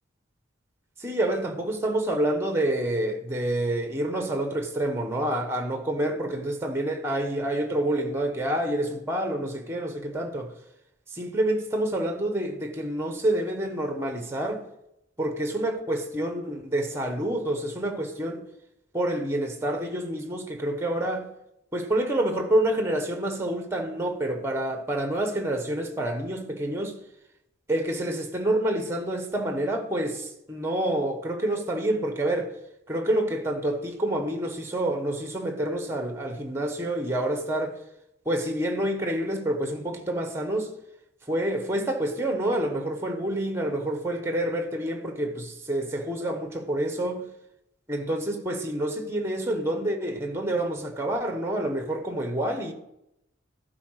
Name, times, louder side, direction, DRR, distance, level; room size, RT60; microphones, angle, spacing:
voice 1, 1.0-10.5 11.1-14.6 15.2-18.4 18.9-21.3 21.7-27.0 27.7-32.5 32.9-37.8 38.2-40.7 41.3-47.3 47.9-52.7, right 1 dB, 15° right, 1.1 m, -28 dB
11.5 x 4.8 x 6.3 m
head